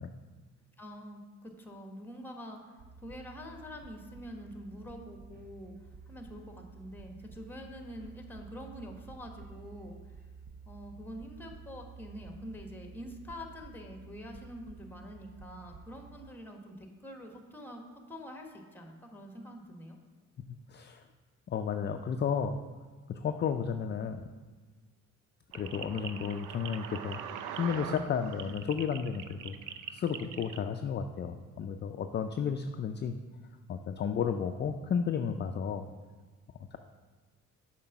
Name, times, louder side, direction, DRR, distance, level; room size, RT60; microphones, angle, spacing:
voice 1, 0.8-5.7 6.1-10.0 10.7-20.0, equal, 5° left, 3 dB, 1.2 m, -46 dB
sound 1, 2.8-16.3, right 5 dB, 30° right, 0.5 m, -51 dB
voice 2, 20.5-21.0 21.5-22.6 23.1-24.3 25.5-27.2 27.5-29.6 29.9-33.2 33.7-35.8 36.7-36.8, left 7 dB, 35° left, 6 dB, 0.4 m, -33 dB
sound 2, 25.5-30.6, right 9 dB, 90° right, 0.5 m, -42 dB
7.2 x 4.5 x 5.9 m, 1.4 s
cardioid pair, 90°, 30 cm